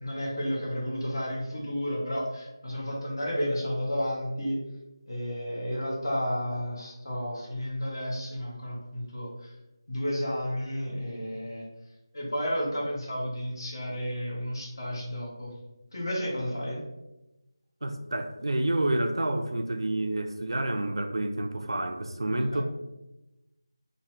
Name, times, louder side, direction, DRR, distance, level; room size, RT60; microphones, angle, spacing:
voice 1, 0.0-4.6 5.1-9.5 9.9-11.7 12.1-15.5 15.9-16.8 22.5-22.6, equal, 55° left, -4 dB, 1.0 m, -32 dB
voice 2, 17.8-22.6, right 1 dB, 75° right, 5 dB, 0.3 m, -29 dB
2.9 x 2.1 x 3.0 m, 0.99 s
figure-of-eight pair, 165°, 3 cm